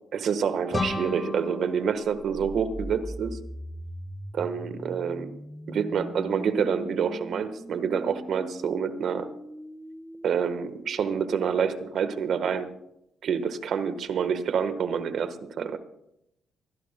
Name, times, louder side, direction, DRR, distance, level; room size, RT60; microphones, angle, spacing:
voice 1, 0.1-3.4 4.3-5.3 5.7-9.3 10.2-12.7 13.2-15.8, right 7 dB, 65° right, 11 dB, 1.2 m, -27 dB
sound 1, 0.7-3.5, left 2 dB, 30° left, 1.7 m, -34 dB
sound 2, 2.0-12.0, equal, ahead, 0.7 m, -41 dB
24.0 x 15.5 x 2.2 m, 0.80 s
cardioid pair, 90°, 0 cm